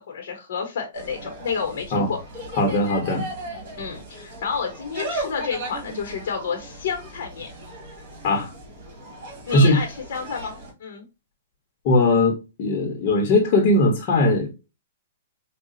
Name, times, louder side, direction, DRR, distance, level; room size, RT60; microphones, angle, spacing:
voice 1, 0.0-2.2 3.8-7.5 9.5-11.1, left 6 dB, 60° left, 1.0 m, -30 dB
Insect, 0.9-10.7, right 1 dB, 45° right, 1.7 m, -36 dB
voice 2, 2.6-3.2 8.2-8.5 9.5-9.8 11.8-14.5, left 2 dB, 45° left, 1.1 m, -19 dB
4.8 x 2.3 x 2.6 m
hypercardioid pair, 135°, 0 cm